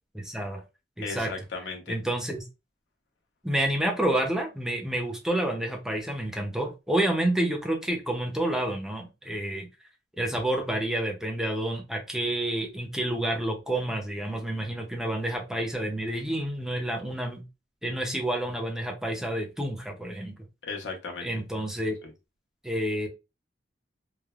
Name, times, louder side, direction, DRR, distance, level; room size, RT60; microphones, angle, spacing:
voice 1, 0.1-0.6 1.0-1.3 1.9-2.4 3.4-9.7 10.2-17.4 17.8-20.4 21.2-22.0 22.6-23.1, right 1 dB, 5° right, 1 dB, 0.5 m, -29 dB
voice 2, 1.0-2.0 14.3-14.8 20.6-21.3 22.0-22.1, left 4 dB, 85° left, 2 dB, 0.8 m, -37 dB
3.2 x 2.0 x 2.3 m, 0.26 s
head